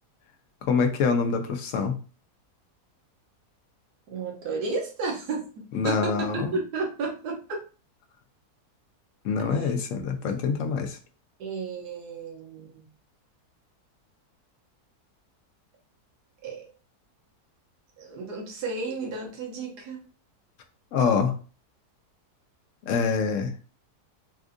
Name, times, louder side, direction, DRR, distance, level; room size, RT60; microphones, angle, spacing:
voice 1, 0.6-2.0 5.7-6.5 9.2-11.0 20.9-21.3 22.9-23.5, left 5 dB, 65° left, 5 dB, 0.8 m, -25 dB
voice 2, 4.1-7.6 9.5-9.7 11.4-12.9 16.4-16.7 18.0-20.0, right 4 dB, 85° right, 0 dB, 1.4 m, -33 dB
4.3 x 2.5 x 2.5 m, 0.37 s
omnidirectional pair, 1.7 m